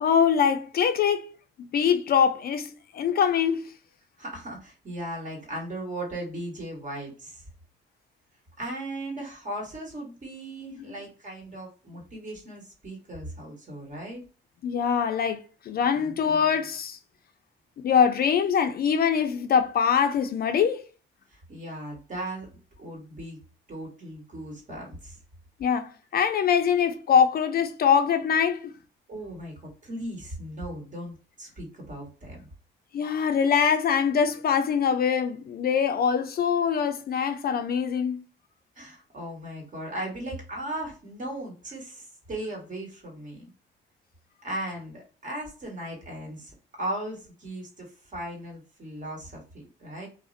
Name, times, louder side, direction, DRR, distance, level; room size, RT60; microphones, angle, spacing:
voice 1, 0.0-1.3 1.6-3.7 10.7-10.9 14.6-17.0 17.8-20.8 25.6-28.7 32.9-38.2, left 7 dB, 50° left, 0.4 m, -23 dB
voice 2, 4.2-7.4 8.6-14.2 21.3-22.5 22.8-23.4 23.7-25.2 29.1-32.5 38.8-43.5 44.4-50.1, right 1 dB, 40° right, 1.3 m, -37 dB
2.4 x 2.0 x 2.5 m
cardioid pair, 90°, 20 cm